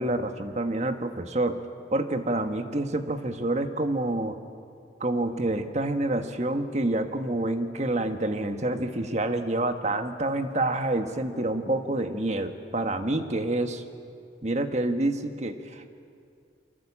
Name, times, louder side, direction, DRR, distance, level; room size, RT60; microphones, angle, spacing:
voice 1, 0.0-1.6 1.9-4.4 5.0-13.8 14.4-15.9, right 2 dB, 40° right, 7 dB, 1.5 m, -27 dB
29.0 x 24.0 x 8.6 m, 2.4 s
head